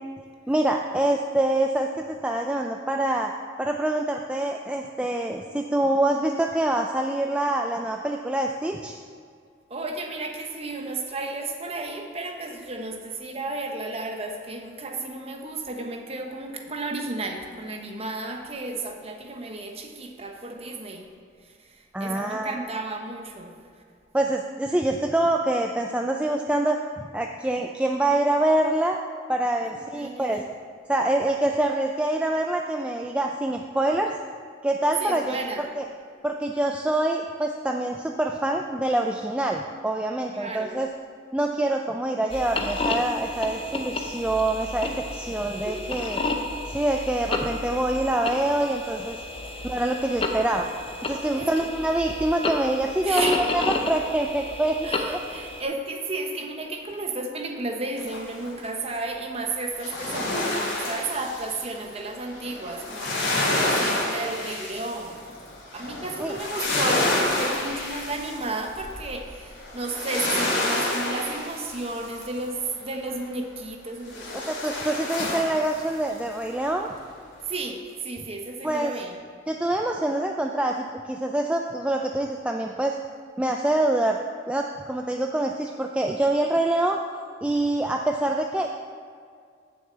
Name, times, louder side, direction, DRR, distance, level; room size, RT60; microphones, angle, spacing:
voice 1, 0.5-3.3 3.6-9.0 21.9-22.6 24.1-29.0 29.3-30.4 30.9-34.1 34.6-35.8 36.2-40.9 41.3-46.2 46.7-49.2 49.6-50.7 51.0-55.2 66.2-66.4 74.3-76.9 78.6-79.0 79.5-83.0 83.4-84.2 84.5-87.0 87.4-88.7, right 1 dB, 5° right, 2 dB, 0.3 m, -25 dB
voice 2, 9.7-21.1 21.6-23.5 29.9-30.4 35.0-35.7 40.3-40.8 45.6-45.9 51.3-51.7 53.0-53.6 54.8-65.3 65.7-74.5 77.5-79.1, right 2 dB, 30° right, 3 dB, 1.0 m, -33 dB
sound 1, 42.3-55.6, left 2 dB, 30° left, 0.7 m, -31 dB
sound 2, 58.0-58.6 59.7-72.5 74.1-76.2 76.6-76.7, left 1 dB, 80° left, 2.8 m, -29 dB
7.2 x 6.4 x 7.8 m, 2.2 s
head